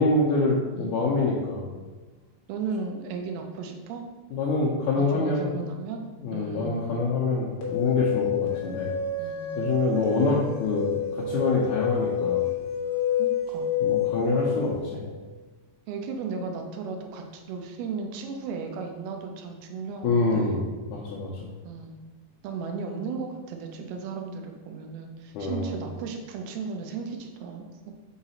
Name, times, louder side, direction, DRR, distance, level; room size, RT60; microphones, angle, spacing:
voice 1, 0.0-1.7 4.3-5.5 6.2-8.9 9.6-10.9 11.1-12.5 13.8-15.1 20.0-21.5 25.3-25.8, left 3 dB, 80° left, -4 dB, 1.8 m, -26 dB
voice 2, 2.5-4.0 5.0-6.0 6.3-7.0 9.2-9.7 13.2-13.7 15.9-20.6 21.6-22.0 22.4-27.9, right 5 dB, 85° right, 4 dB, 2.6 m, -35 dB
sound 1, 7.6-14.8, left 7 dB, 65° left, 1.4 m, -28 dB
5.9 x 4.0 x 4.2 m, 1.3 s
omnidirectional pair, 4.3 m